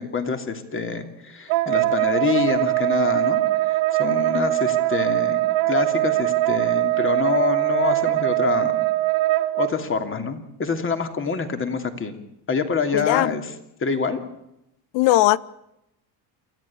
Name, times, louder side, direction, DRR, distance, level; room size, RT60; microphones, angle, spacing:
voice 1, 0.0-5.4 5.7-8.9 9.5-12.2 12.5-13.5 13.8-14.2, left 5 dB, 25° left, 7 dB, 2.9 m, -26 dB
Wind instrument woodwind instrument, 1.5-9.7, right 17 dB, 75° right, 2.7 m, -22 dB
voice 2, 12.9-13.3 14.9-15.4, left 16 dB, 65° left, 20 dB, 1.0 m, -18 dB
28.0 x 14.0 x 8.7 m, 0.84 s
cardioid pair, 120°, 47 cm